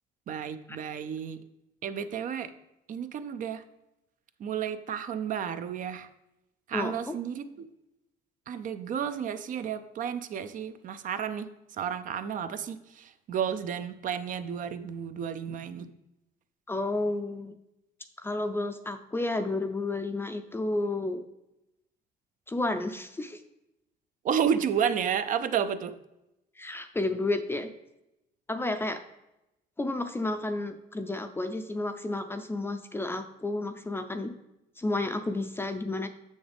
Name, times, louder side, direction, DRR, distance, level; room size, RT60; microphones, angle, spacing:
voice 1, 0.3-1.4 1.8-2.5 2.9-3.6 4.4-6.1 6.7-7.5 8.5-11.5 11.8-15.9 24.2-25.9, right 8 dB, 50° right, 12 dB, 0.5 m, -31 dB
voice 2, 6.7-7.1 16.7-17.5 18.2-21.2 22.5-23.4 26.6-27.7 28.5-29.0 29.8-34.3 34.8-36.1, left 2 dB, 15° left, 7 dB, 0.5 m, -31 dB
7.0 x 6.3 x 3.4 m, 0.89 s
cardioid pair, 110°, 17 cm